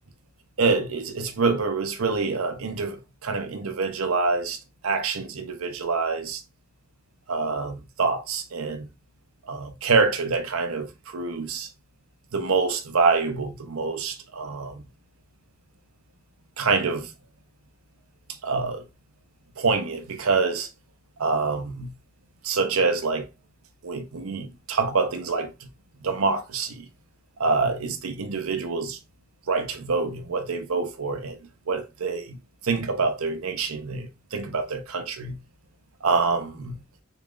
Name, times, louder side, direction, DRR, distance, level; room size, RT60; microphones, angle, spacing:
voice 1, 0.6-6.4 7.3-8.9 9.4-11.7 12.3-14.8 16.6-17.1 18.4-18.8 19.6-20.7 21.2-21.9 22.4-23.3 23.8-25.5 26.0-26.9 27.4-29.0 29.5-31.4 31.7-32.4 32.6-35.4 36.0-36.8, right 4 dB, 80° right, 0.8 m, -26 dB
4.0 x 3.7 x 2.5 m
head